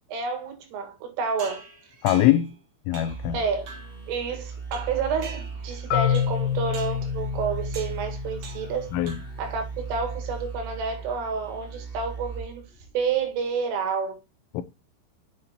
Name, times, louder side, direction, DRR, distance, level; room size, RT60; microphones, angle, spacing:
voice 1, 0.1-1.6 3.3-3.7 4.1-8.9 9.4-12.7 12.9-14.2, right 5 dB, 85° right, 4.2 m, -29 dB
sound 1, 1.4-2.5 2.9-3.3 3.7-4.0 4.7-5.8 6.1-6.4 6.7-7.1 7.7-8.0 8.4-8.8 9.1-9.5, right 5 dB, 60° right, 1.9 m, -43 dB
voice 2, 2.0-2.6 2.9-3.4 8.9-9.2 14.5-14.6, left 13 dB, 90° left, 3.2 m, -22 dB
sound 2, 3.1-13.4, right 5 dB, 20° right, 1.5 m, -38 dB
Marimba xylophone, 5.9-9.8, left 10 dB, 70° left, 2.5 m, -29 dB
7.7 x 6.7 x 2.9 m
omnidirectional pair, 5.6 m